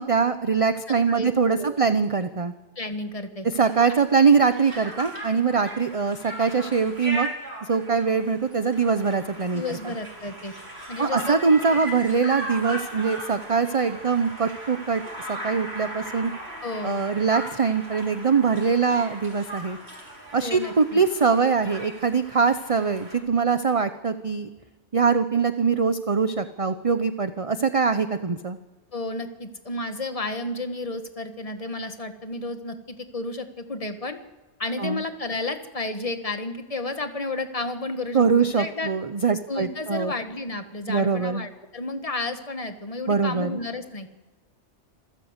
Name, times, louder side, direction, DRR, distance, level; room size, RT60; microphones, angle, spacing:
voice 1, 0.0-2.5 3.5-7.3 7.7-9.9 11.0-15.0 15.3-16.3 16.8-19.8 20.3-24.5 24.9-28.6 34.8-35.0 38.1-40.1 40.9-41.5 43.1-43.6, right 5 dB, 35° right, 10 dB, 0.8 m, -23 dB
voice 2, 1.1-1.8 2.7-3.5 3.9-4.0 9.5-10.5 10.9-11.4 16.6-17.0 20.4-21.0 28.9-34.2 34.6-38.9 39.5-44.1, left 2 dB, 30° left, 8 dB, 1.7 m, -32 dB
Conversation, 3.7-23.2, right 1 dB, 60° right, 5.7 m, -38 dB
27.0 x 15.0 x 8.1 m, 1.2 s
omnidirectional pair, 1.2 m